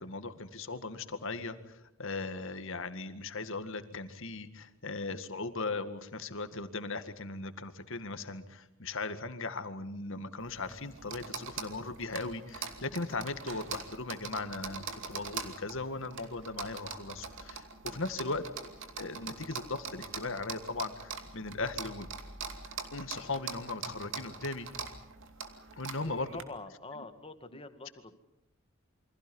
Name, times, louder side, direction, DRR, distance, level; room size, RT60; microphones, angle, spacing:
voice 1, 0.0-18.4 19.0-22.1 22.9-24.7 25.8-26.3 27.0-27.1, left 3 dB, 65° left, 9 dB, 2.0 m, -38 dB
sound 1, 10.4-26.4, right 5 dB, 65° right, 2.7 m, -43 dB
voice 2, 26.3-28.2, left 3 dB, 25° left, 9 dB, 1.8 m, -45 dB
29.0 x 24.5 x 5.5 m, 0.86 s
head